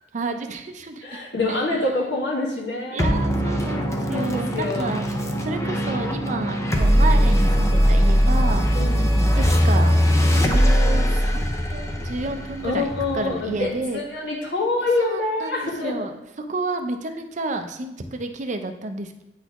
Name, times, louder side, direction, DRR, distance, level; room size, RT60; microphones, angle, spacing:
voice 1, 0.1-1.0 1.5-1.7 2.9-5.1 5.4-8.7 9.1-10.0 10.3-12.9 13.1-14.0 15.0-16.2 16.5-19.2, right 2 dB, 45° right, 7 dB, 0.5 m, -30 dB
voice 2, 1.0-3.1 4.1-5.0 8.7-9.0 12.6-15.9, left 2 dB, 75° left, -3 dB, 1.7 m, -26 dB
sound 1, 3.0-13.8, equal, 15° left, 0.5 m, -20 dB
9.3 x 4.1 x 3.0 m, 0.92 s
head